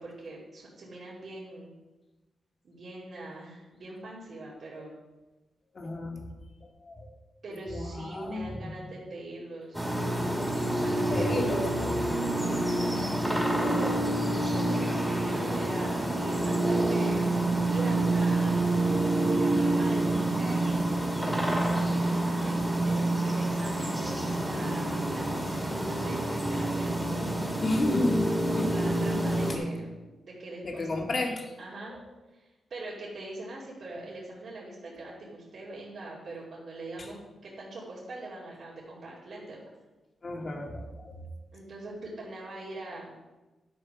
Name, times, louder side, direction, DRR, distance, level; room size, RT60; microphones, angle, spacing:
voice 1, 0.0-1.7 2.6-4.9 7.4-9.8 10.7-11.3 13.3-17.4 17.7-18.7 19.2-21.6 22.4-27.5 28.5-29.9 30.2-30.9 31.6-32.0 32.3-37.2 37.4-39.6 41.5-43.1, right 2 dB, 60° right, -9 dB, 3.1 m, -42 dB
voice 2, 5.7-6.2 6.8-7.1 7.7-8.8 11.1-12.3 27.6-28.7 29.5-29.6 30.6-31.5 31.9-32.0 40.2-41.1, left 2 dB, 40° left, 1 dB, 2.1 m, -32 dB
sound 1, 9.7-29.6, right 2 dB, ahead, 2.6 m, -27 dB
11.5 x 6.3 x 6.1 m, 1.1 s
cardioid pair, 95°, 0 cm